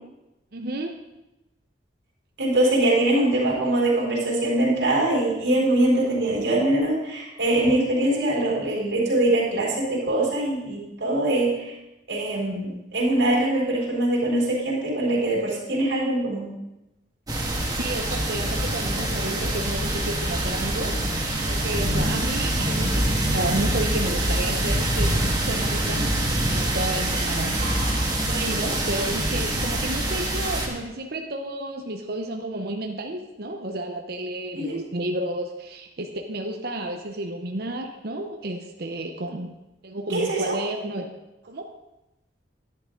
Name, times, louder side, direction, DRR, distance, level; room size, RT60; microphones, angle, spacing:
voice 1, 0.5-1.0 17.7-21.0 21.4-25.2 25.5-26.1 26.5-27.6 28.2-39.5 39.8-41.1 41.5-41.7, right 1 dB, 60° right, 3 dB, 0.8 m, -31 dB
voice 2, 2.4-11.7 12.1-16.5 27.6-28.0 34.5-34.8 40.1-40.6, right 1 dB, 90° right, -5 dB, 3.8 m, -23 dB
sound 1, 17.3-30.7, right 1 dB, 20° right, 1.8 m, -25 dB
11.0 x 10.5 x 3.8 m, 0.97 s
head